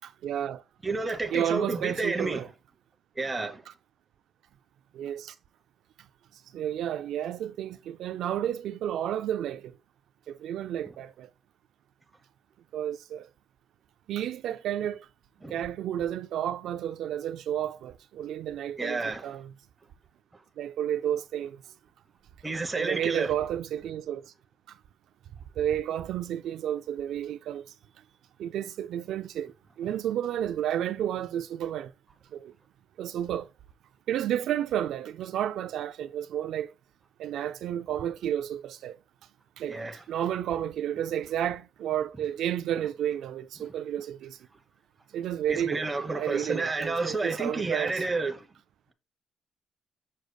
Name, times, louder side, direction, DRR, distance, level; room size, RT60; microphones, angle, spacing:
voice 1, 0.0-0.6 1.3-2.5 4.9-5.4 6.3-9.8 10.3-11.3 12.7-13.3 14.1-15.1 15.5-19.5 20.6-21.6 22.7-24.3 25.6-27.7 28.4-31.9 32.3-32.5 33.0-33.5 34.1-36.7 37.2-39.0 39.6-39.8 40.1-44.4 45.1-48.0, right 10 dB, 70° right, 0.4 m, -31 dB
voice 2, 0.8-2.5 3.1-3.6 15.4-15.6 18.8-19.3 22.4-23.3 39.7-40.0 43.6-43.7 45.5-48.5, right 3 dB, 10° right, 0.9 m, -30 dB
6.4 x 6.3 x 2.3 m
cardioid pair, 160°, 0 cm